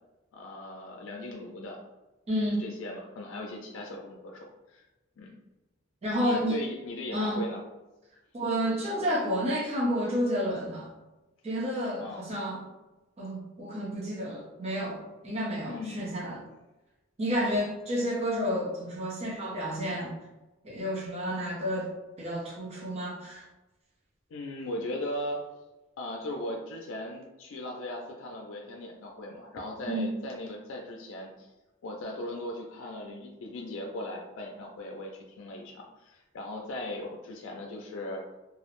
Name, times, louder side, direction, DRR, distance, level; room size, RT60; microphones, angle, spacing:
voice 1, 0.3-1.8 2.6-4.8 5.2-5.4 6.2-7.6 12.0-12.2 15.7-16.1 17.3-17.6 24.3-25.5 26.0-31.5 31.8-38.2, left 1 dB, 85° left, 0 dB, 0.4 m, -38 dB
voice 2, 2.3-2.6 6.0-6.6 7.1-7.4 8.3-10.9 11.4-12.7 13.2-16.4 17.2-20.1 20.6-23.4 29.9-30.1, equal, 35° right, -5 dB, 0.6 m, -30 dB
2.3 x 2.0 x 2.9 m, 1.1 s
head